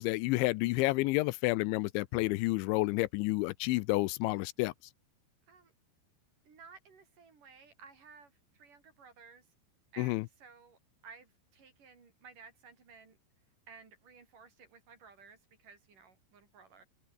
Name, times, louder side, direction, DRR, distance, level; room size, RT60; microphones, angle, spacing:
voice 1, 0.0-4.7 10.0-10.2, left 21 dB, 85° left, 3.0 m, -30 dB
voice 2, 6.5-9.5 9.9-13.2 13.7-16.8, right 5 dB, 45° right, 5.4 m, -56 dB
omnidirectional pair, 5.3 m